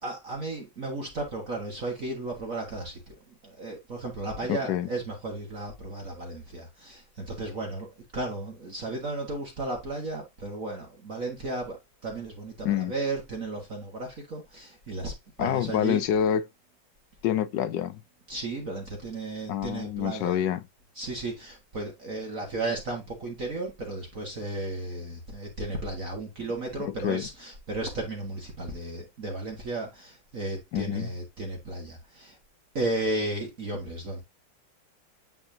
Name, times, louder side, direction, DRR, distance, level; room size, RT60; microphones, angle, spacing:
voice 1, 0.0-3.1 3.4-11.8 12.0-16.1 18.3-20.4 21.0-32.4 32.8-34.2, right 2 dB, 40° right, 2.0 m, -34 dB
voice 2, 4.5-4.9 12.6-12.9 15.4-16.4 17.2-18.0 19.5-20.6 26.9-27.3 30.7-31.1, left 10 dB, 70° left, 1.1 m, -27 dB
9.7 x 4.4 x 2.8 m
omnidirectional pair, 2.3 m